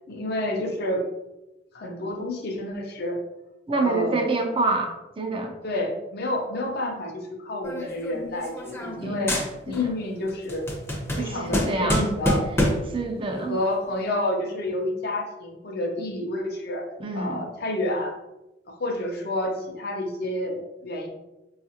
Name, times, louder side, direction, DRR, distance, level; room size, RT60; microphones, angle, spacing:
voice 1, 0.1-1.1 1.7-3.2 3.7-4.2 5.6-9.3 9.7-10.7 11.2-12.4 13.3-16.9 17.1-18.1 18.8-21.1, left 1 dB, 60° left, 1 dB, 0.6 m, -29 dB
voice 2, 3.7-5.5 9.0-9.1 9.7-9.8 11.2-12.0 12.9-13.6 17.0-17.4, right 3 dB, 30° right, 3 dB, 0.4 m, -26 dB
sound 1, 7.6-9.0 9.3-9.9 10.3-13.0, equal, 15° left, 0.6 m, -27 dB
3.9 x 2.4 x 2.8 m, 0.97 s
head